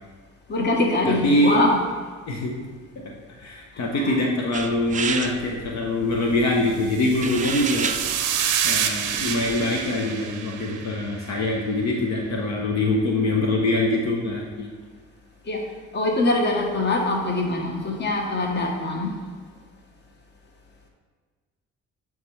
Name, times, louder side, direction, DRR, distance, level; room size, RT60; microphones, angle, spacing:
voice 1, 0.5-1.8 3.9-4.1 15.5-15.6 15.9-19.1, left 2 dB, 35° left, 0 dB, 1.1 m, -23 dB
voice 2, 1.2-1.6 2.3-2.5 3.0-3.1 3.4-7.9 8.6-14.7, left 1 dB, 65° left, 0 dB, 0.9 m, -23 dB
sound 1, 4.5-10.0, right 6 dB, 25° right, 0.4 m, -33 dB
sound 2, 6.9-11.4, right 8 dB, 90° right, 0.6 m, -28 dB
9.0 x 3.6 x 3.2 m, 1.5 s
cardioid pair, 90°, 30 cm